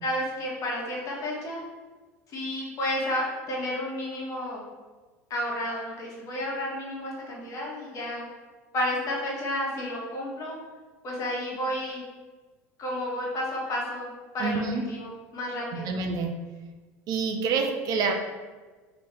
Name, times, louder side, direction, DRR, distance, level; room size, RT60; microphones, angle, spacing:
voice 1, 0.0-1.6 2.3-4.7 5.3-8.2 8.7-10.6 11.0-12.0 12.8-14.1 14.3-14.6 14.9-15.9, left 1 dB, 45° left, -3 dB, 1.4 m, -31 dB
voice 2, 14.4-14.8 15.7-16.3 17.1-18.1, right 4 dB, 55° right, 4 dB, 0.6 m, -27 dB
3.1 x 2.9 x 4.5 m, 1.3 s
hypercardioid pair, 90°, 8 cm